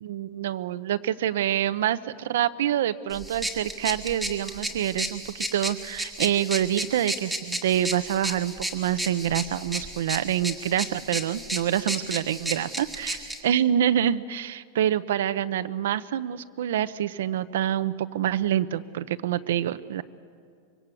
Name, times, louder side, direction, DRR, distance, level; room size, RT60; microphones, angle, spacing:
voice 1, 0.0-13.2 13.4-20.0, right 11 dB, 75° right, 13 dB, 0.8 m, -26 dB
sound 1, 3.1-13.4, right 1 dB, ahead, 1.7 m, -33 dB
24.5 x 23.5 x 8.4 m, 2.2 s
supercardioid pair, 175°, 0 cm